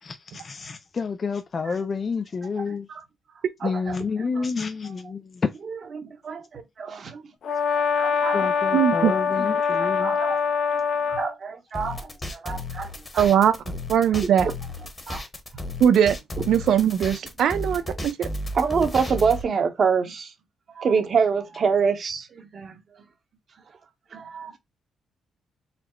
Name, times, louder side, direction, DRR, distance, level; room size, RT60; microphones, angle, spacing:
voice 1, 0.0-2.9 3.6-5.5 8.3-10.2, left 5 dB, 40° left, 0.4 m, -29 dB
voice 2, 3.6-4.0 4.4-4.5 5.9-8.5 9.8-10.4 10.7-10.8 11.1-13.3 14.1-14.5 15.1-15.2 18.5-20.3 20.7-22.8 24.1-24.6, right 5 dB, 50° right, 1.1 m, -27 dB
Brass instrument, 7.4-11.3, left 6 dB, 65° left, 0.8 m, -24 dB
voice 3, 8.7-9.1 13.2-13.6 13.9-14.5 15.8-16.2 16.5-18.3, right 9 dB, 70° right, 0.6 m, -20 dB
sound 1, 11.7-19.4, left 1 dB, 25° left, 1.1 m, -34 dB
4.0 x 2.1 x 4.4 m
cardioid pair, 90°, 0 cm